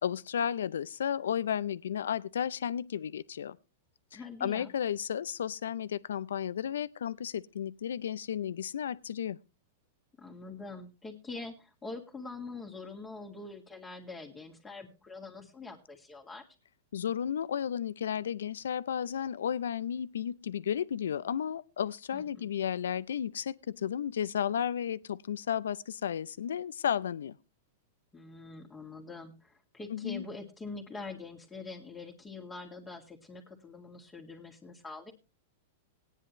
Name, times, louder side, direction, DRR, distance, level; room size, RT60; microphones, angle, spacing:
voice 1, 0.0-3.6 4.1-9.4 16.9-27.4 29.9-30.3, left 9 dB, 85° left, 0.5 m, -33 dB
voice 2, 4.1-4.7 10.2-16.4 22.1-22.5 28.1-35.1, left 3 dB, 15° left, 2.1 m, -44 dB
17.0 x 10.0 x 3.0 m
hypercardioid pair, 120°, 0 cm